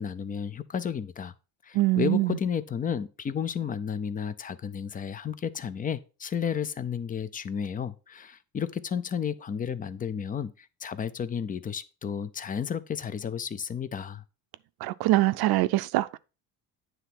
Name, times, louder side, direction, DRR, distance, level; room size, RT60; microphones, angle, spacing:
voice 1, 0.0-1.3 1.6-14.2, left 7 dB, 20° left, 0.3 m, -32 dB
voice 2, 1.7-2.4 14.8-16.2, right 17 dB, 60° right, 0.5 m, -24 dB
9.4 x 3.4 x 5.7 m
cardioid pair, 140°, 42 cm